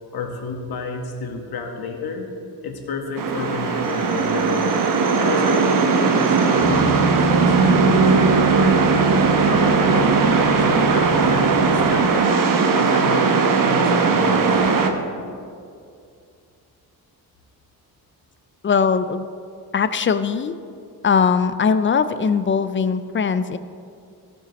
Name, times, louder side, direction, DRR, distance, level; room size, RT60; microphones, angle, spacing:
voice 1, 0.1-2.3 2.6-4.9 5.1-9.0 9.4-12.3 12.7-15.0, left 4 dB, 65° left, 2 dB, 1.5 m, -30 dB
sound 1, 3.2-14.9, right 4 dB, 55° right, 1.0 m, -18 dB
sound 2, 6.6-12.0, right 1 dB, ahead, 2.6 m, -28 dB
voice 2, 18.6-19.3 19.7-20.5 21.0-23.6, left 6 dB, 30° left, 12 dB, 0.4 m, -20 dB
15.0 x 7.2 x 4.1 m, 2.3 s
cardioid pair, 130°, 39 cm